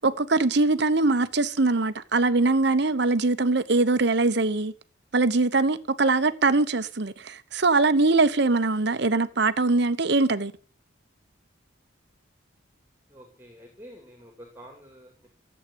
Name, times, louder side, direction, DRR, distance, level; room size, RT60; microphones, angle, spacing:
voice 1, 0.0-4.7 5.1-10.5, right 3 dB, 55° right, 0.9 m, -22 dB
voice 2, 13.1-15.3, equal, 10° right, 2.8 m, -48 dB
14.0 x 8.2 x 9.2 m
head